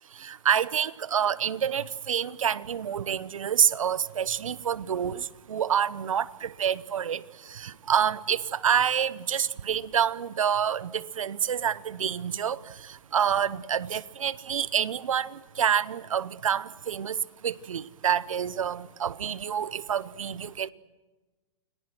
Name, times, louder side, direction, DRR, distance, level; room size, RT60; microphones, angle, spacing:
voice 1, 0.2-7.2 7.5-12.6 13.1-20.7, right 8 dB, 85° right, 18 dB, 1.1 m, -27 dB
29.5 x 23.5 x 6.3 m, 1.2 s
hypercardioid pair, 135°, 17 cm